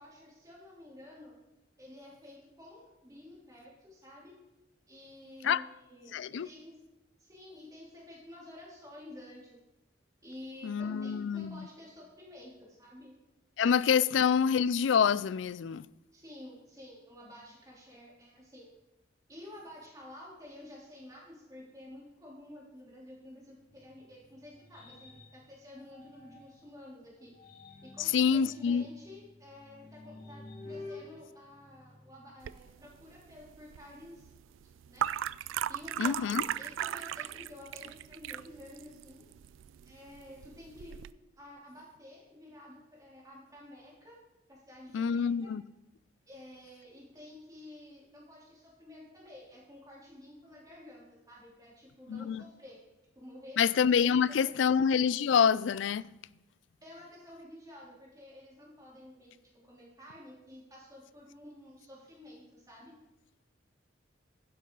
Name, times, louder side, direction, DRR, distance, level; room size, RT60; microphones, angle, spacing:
voice 1, 0.0-1.3 1.8-4.4 4.9-6.8 7.2-9.6 10.2-13.1 14.0-14.2 16.1-18.7 19.3-27.3 27.8-35.1 35.7-39.2 39.8-41.0 41.4-44.2 44.5-45.5 46.3-52.8 53.1-53.6 54.0-54.2 54.4-54.6 56.8-59.3 59.6-63.0, left 1 dB, 20° right, 3.2 m, -51 dB
voice 2, 6.1-6.5 10.6-11.6 13.6-15.9 28.1-28.9 36.0-36.4 44.9-45.6 52.1-52.4 53.6-56.0, left 7 dB, 70° left, 0.4 m, -26 dB
sound 1, 23.5-26.7 27.2-32.4, left 2 dB, 50° left, 3.5 m, -51 dB
sound 2, 32.4-41.1, right 10 dB, 80° right, 0.3 m, -38 dB
12.0 x 10.0 x 3.9 m
head